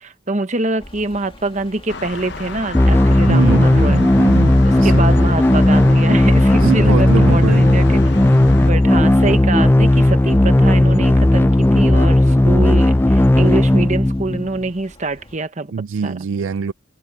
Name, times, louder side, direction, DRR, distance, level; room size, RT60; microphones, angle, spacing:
voice 1, 0.0-4.0 4.6-8.3 8.6-15.7 16.0-16.2, right 2 dB, 35° right, 1.0 m, -24 dB
sound 1, 0.8-15.4, left 1 dB, 30° left, 2.6 m, -44 dB
sound 2, 1.9-8.7, left 3 dB, 60° left, 1.0 m, -30 dB
sound 3, 2.7-14.7, left 1 dB, 10° left, 0.3 m, -14 dB
voice 2, 3.3-5.2 6.6-7.8 15.7-16.7, right 5 dB, 80° right, 0.4 m, -23 dB
head